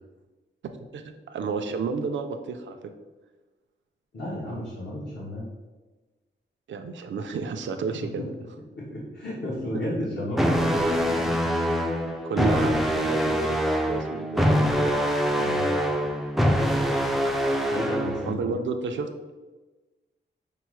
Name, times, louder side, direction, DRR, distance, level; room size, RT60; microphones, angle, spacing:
voice 1, 0.7-2.8 6.7-8.2 12.2-14.9 18.3-19.3, right 5 dB, 65° right, 6 dB, 0.4 m, -31 dB
voice 2, 4.1-5.4 8.2-8.3 8.8-11.4 15.4-15.8 17.7-18.6, left 1 dB, 60° left, -7 dB, 1.0 m, -33 dB
sound 1, 10.3-18.3, equal, ahead, 0.3 m, -24 dB
5.5 x 2.0 x 4.5 m, 1.2 s
wide cardioid pair, 145°, 21 cm